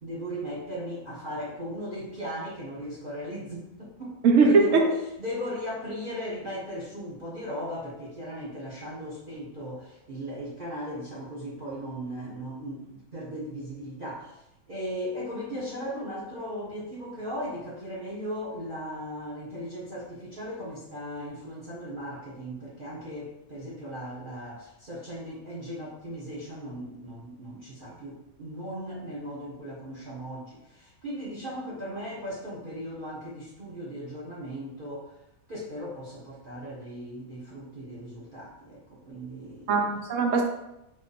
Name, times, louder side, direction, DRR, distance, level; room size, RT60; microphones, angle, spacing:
voice 1, 0.0-4.1 4.4-4.9 5.2-35.2 35.5-39.8, equal, 40° right, -7 dB, 1.6 m, -37 dB
voice 2, 4.2-4.8 39.7-40.5, right 4 dB, 65° right, 2 dB, 1.2 m, -20 dB
5.1 x 4.5 x 4.2 m, 0.87 s
omnidirectional pair, 1.4 m